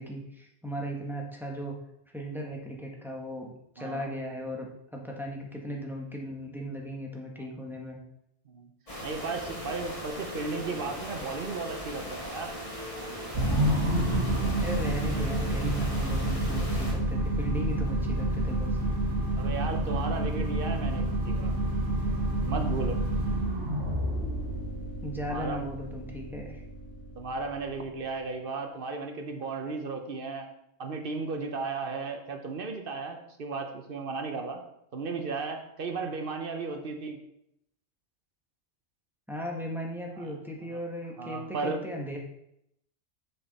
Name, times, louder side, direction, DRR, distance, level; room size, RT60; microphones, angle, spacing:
voice 1, 0.0-1.7 2.1-8.0 14.6-18.8 25.0-26.6 39.3-42.2, equal, ahead, -1 dB, 1.1 m, -37 dB
voice 2, 3.8-4.1 7.4-7.5 8.5-8.7 9.0-12.5 19.4-21.5 22.5-23.0 25.3-25.7 27.2-30.5 30.8-34.6 34.9-37.2 40.2-40.3 41.2-41.8, right 4 dB, 55° right, 5 dB, 1.0 m, -35 dB
sound 1, 8.9-16.9, equal, 30° left, 1.8 m, -39 dB
sound 2, 13.3-27.8, right 1 dB, 90° right, 1.8 m, -29 dB
6.7 x 6.1 x 4.0 m, 0.78 s
omnidirectional pair, 1.2 m